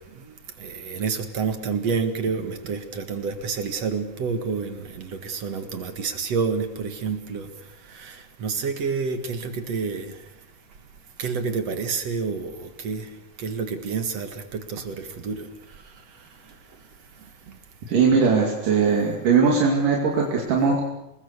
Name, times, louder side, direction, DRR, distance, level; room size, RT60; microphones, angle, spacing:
voice 1, 0.0-10.5 11.2-17.6, right 5 dB, 55° right, 2.7 m, -30 dB
voice 2, 17.9-20.9, right 5 dB, 75° right, 4.2 m, -20 dB
27.5 x 21.0 x 6.8 m
omnidirectional pair, 3.7 m